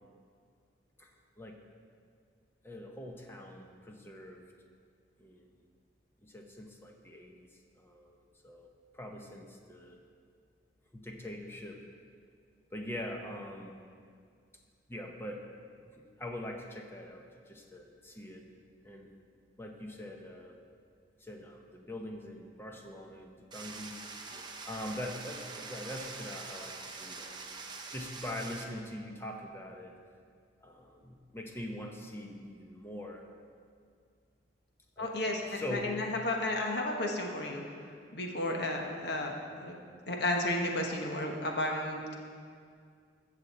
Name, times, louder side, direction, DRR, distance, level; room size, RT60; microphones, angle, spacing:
voice 1, 2.6-4.4 5.2-5.5 6.2-7.5 7.8-8.7 8.9-10.0 10.9-11.8 12.7-13.8 14.9-15.4 16.0-18.4 18.8-19.1 19.6-20.6 21.2-24.0 24.7-27.6 27.9-29.9 30.6-33.2 35.0-35.9, left 1 dB, 15° left, 2 dB, 0.9 m, -43 dB
sound 1, 23.5-28.6, right 4 dB, 25° right, 0.8 m, -44 dB
voice 2, 35.0-37.6 38.1-39.8 40.1-42.1, left 1 dB, 65° left, 1 dB, 1.2 m, -33 dB
14.0 x 6.6 x 4.3 m, 2.2 s
head